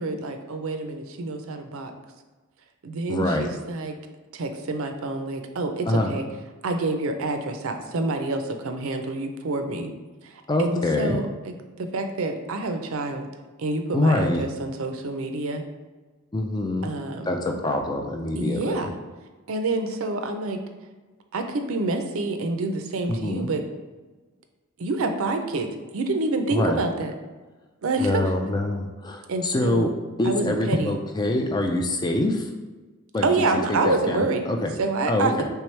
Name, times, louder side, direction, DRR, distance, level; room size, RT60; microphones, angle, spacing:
voice 1, 0.0-1.9 2.8-4.0 4.3-6.3 6.6-9.9 10.2-13.3 13.6-15.6 16.8-17.3 18.4-18.9 19.5-20.6 21.3-23.6 24.8-25.7 25.9-27.1 27.8-28.2 29.3-29.9 30.2-30.9 33.2-34.4 34.8-35.3, right 3 dB, 70° right, 6 dB, 0.5 m, -27 dB
voice 2, 3.1-3.5 5.9-6.1 10.5-11.2 13.9-14.4 16.3-16.9 17.2-18.9 23.1-23.5 26.5-26.8 28.0-29.9 30.2-32.5 33.1-33.3 33.7-34.7 35.1-35.5, left 1 dB, 20° left, 3 dB, 0.3 m, -25 dB
4.5 x 3.4 x 3.2 m, 1.3 s
head